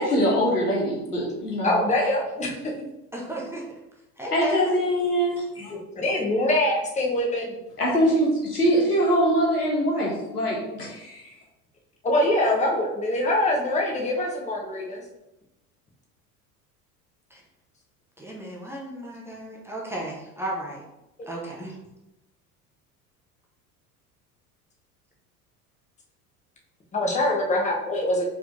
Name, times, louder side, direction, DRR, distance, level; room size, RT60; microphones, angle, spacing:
voice 1, 0.0-1.7 4.3-5.7 7.8-11.3, equal, 85° left, -4 dB, 1.3 m, -23 dB
voice 2, 1.6-2.7 5.7-7.6 12.0-15.0 21.6-21.7 26.9-28.2, left 1 dB, 15° left, -1 dB, 1.0 m, -24 dB
voice 3, 3.1-3.6 4.2-4.8 17.3-17.4 18.2-20.9 21.3-21.8, right 1 dB, 5° right, -3 dB, 0.6 m, -34 dB
4.7 x 3.3 x 2.6 m, 0.91 s
figure-of-eight pair, 70°, 45 cm